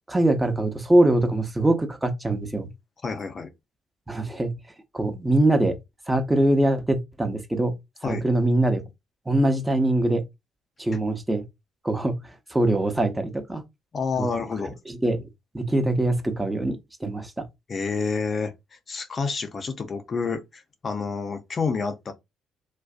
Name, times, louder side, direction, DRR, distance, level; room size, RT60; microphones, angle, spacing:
voice 1, 0.1-2.7 4.1-4.5 4.9-5.7 6.1-7.7 8.0-8.8 9.3-10.2 10.8-11.4 11.8-12.2 12.5-13.6 14.2-14.3 14.9-15.3 15.5-17.3, right 1 dB, 15° right, 0.7 m, -23 dB
voice 2, 3.0-3.5 8.0-8.2 10.9-11.0 13.9-14.8 17.7-22.1, left 4 dB, 45° left, 0.5 m, -29 dB
2.5 x 2.2 x 2.4 m
hypercardioid pair, 55°, 0 cm